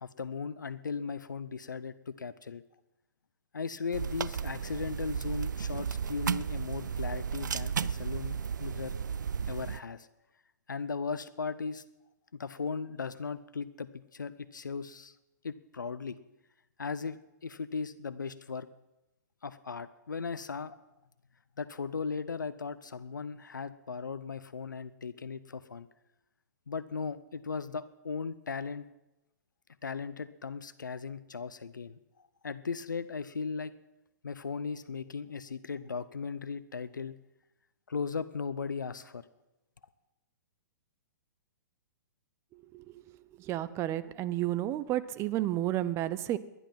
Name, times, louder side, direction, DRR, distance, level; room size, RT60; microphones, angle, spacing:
voice 1, 0.0-2.6 3.5-9.0 9.5-10.1 10.7-11.8 12.3-15.2 15.4-16.2 16.8-18.7 19.4-20.8 21.6-25.9 26.7-28.9 29.8-33.7 34.2-37.2 37.9-39.3, left 5 dB, 80° left, 15 dB, 0.7 m, -37 dB
sound 1, 3.9-9.8, right 7 dB, 75° right, 0.4 m, -34 dB
voice 2, 43.4-46.4, right 14 dB, 25° right, 15 dB, 0.8 m, -31 dB
20.0 x 11.0 x 5.7 m, 0.94 s
figure-of-eight pair, 115°, 10 cm